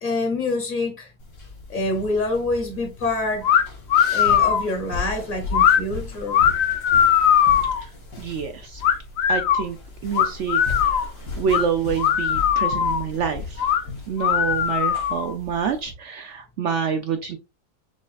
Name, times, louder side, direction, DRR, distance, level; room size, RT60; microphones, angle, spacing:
voice 1, 0.0-1.1 1.7-3.5 4.1-6.4, left 2 dB, 40° left, 0.9 m, -26 dB
sound 1, 1.2-15.9, left 4 dB, 90° left, 2.0 m, -36 dB
sound 2, 3.4-3.6 3.9-4.7 5.5-5.8 6.3-7.8 8.8-9.6 10.1-11.1 11.5-11.6 12.0-13.0 13.6-13.8 14.2-15.3, left 9 dB, 65° left, 0.9 m, -19 dB
voice 2, 8.2-8.8 9.3-9.8 10.0-11.1 11.4-13.7 14.1-17.4, right 7 dB, 75° right, 0.6 m, -27 dB
6.3 x 2.3 x 2.4 m
omnidirectional pair, 1.8 m